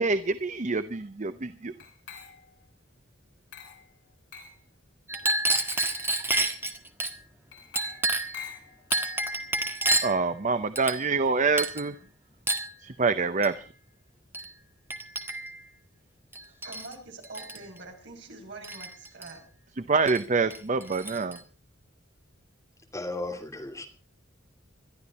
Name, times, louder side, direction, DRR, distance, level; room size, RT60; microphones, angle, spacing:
voice 1, 0.0-1.7 10.0-11.9 12.8-13.6 19.9-21.4, right 4 dB, 40° right, 12 dB, 0.7 m, -26 dB
Glass, 1.8-2.6 3.5-3.9 4.3-4.6 5.5-6.1 7.5-9.5, left 7 dB, 60° left, 3.6 m, -45 dB
Chink clink, 5.1-7.1 7.8-8.4 8.9-10.2 10.8-11.3 11.6-11.9 12.5-12.7 13.4-13.6 14.3-14.5 14.9-15.6 16.3-16.9 17.2-17.6 18.6-19.3 20.1-20.2 20.5-21.4, right 2 dB, 10° right, 1.6 m, -29 dB
voice 2, 16.4-19.4, right 2 dB, 60° right, 3 dB, 5.3 m, -45 dB
voice 3, 22.9-23.9, left 2 dB, 15° left, 3 dB, 2.7 m, -35 dB
21.5 x 12.5 x 4.2 m, 0.36 s
head